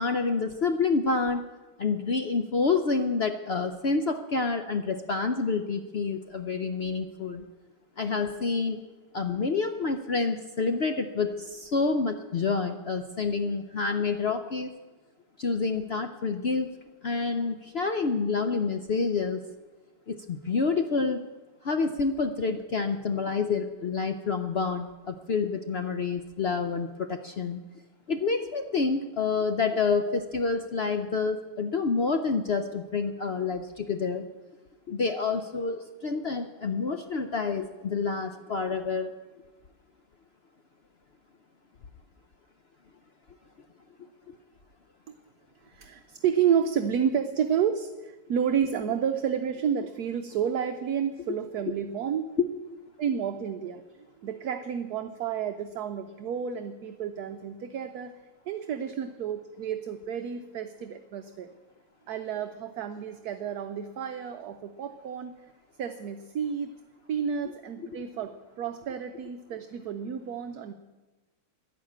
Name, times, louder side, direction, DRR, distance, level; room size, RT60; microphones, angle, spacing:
voice 1, 0.0-1.4 1.8-7.5 8.0-8.8 9.1-14.7 15.4-16.7 17.0-19.4 20.1-21.2 21.6-27.6 28.1-34.2 34.9-39.1 44.3-44.4 52.4-52.5, left 4 dB, 65° left, 7 dB, 0.6 m, -28 dB
voice 2, 45.6-52.3 53.0-53.8 54.2-58.1 58.5-61.5 62.1-65.3 65.8-66.8 67.1-70.7, right 8 dB, 65° right, 7 dB, 1.2 m, -30 dB
11.5 x 11.0 x 8.6 m, 1.2 s
omnidirectional pair, 1.9 m